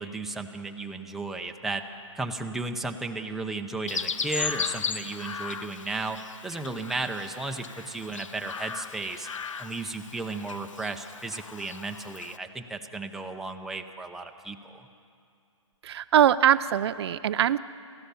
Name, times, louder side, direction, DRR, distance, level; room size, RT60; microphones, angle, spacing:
voice 1, 0.0-1.8 2.1-6.2 6.4-9.3 9.6-14.9, right 3 dB, ahead, 3 dB, 0.8 m, -34 dB
Chirp tweet, 3.9-12.4, left 6 dB, 75° left, 1.0 m, -36 dB
voice 2, 15.8-17.6, right 10 dB, 55° right, 13 dB, 0.5 m, -22 dB
29.5 x 15.0 x 7.1 m, 2.5 s
hypercardioid pair, 150°, 16 cm